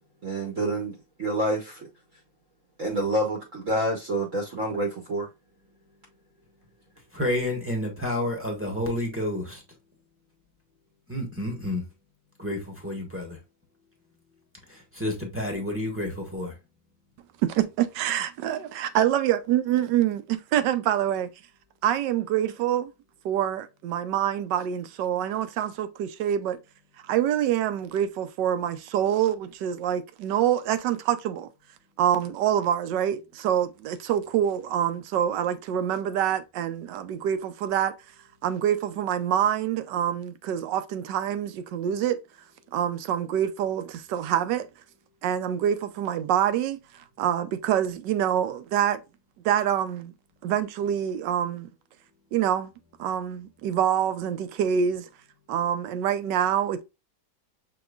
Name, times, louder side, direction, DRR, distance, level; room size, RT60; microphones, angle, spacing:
voice 1, 0.2-1.9 2.8-5.3, right 1 dB, 50° right, 1.1 m, -28 dB
voice 2, 7.1-9.6 11.1-11.9 12.4-13.4 14.7-16.5, left 1 dB, 10° right, 1.0 m, -30 dB
voice 3, 17.4-21.3 21.8-22.9 23.2-26.6 27.0-31.5 32.0-37.9 38.4-42.2 42.7-44.7 45.2-49.0 49.4-50.1 50.4-51.7 52.3-52.7 53.0-55.1 55.5-56.8, right 10 dB, 75° right, 1.1 m, -26 dB
6.0 x 2.9 x 2.3 m
omnidirectional pair, 2.1 m